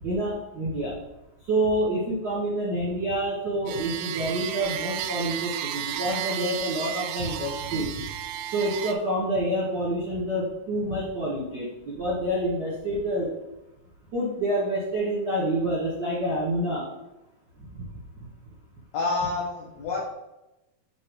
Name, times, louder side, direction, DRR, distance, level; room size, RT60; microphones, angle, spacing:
voice 1, 0.0-0.9 1.4-7.9 8.5-13.3 14.1-16.9, right 1 dB, 60° right, -6 dB, 1.1 m, -27 dB
sound 1, 3.7-8.9, right 10 dB, 90° right, 2.5 m, -33 dB
voice 2, 18.9-20.1, left 3 dB, 75° left, -4 dB, 1.6 m, -28 dB
7.8 x 3.1 x 4.6 m, 0.95 s
omnidirectional pair, 4.4 m